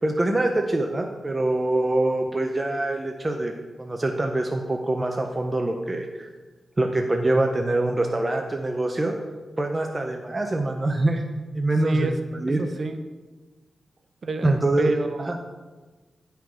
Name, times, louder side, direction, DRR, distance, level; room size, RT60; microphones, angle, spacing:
voice 1, 0.0-3.5 3.8-6.3 6.8-9.2 9.6-11.2 11.5-12.6 14.4-14.9 15.2-15.4, right 2 dB, 25° right, 3 dB, 0.7 m, -24 dB
voice 2, 11.8-12.1 12.6-13.0 14.2-14.5 14.8-15.4, right 3 dB, 50° right, 6 dB, 0.9 m, -28 dB
9.0 x 5.8 x 4.9 m, 1.3 s
wide cardioid pair, 95°, 0 cm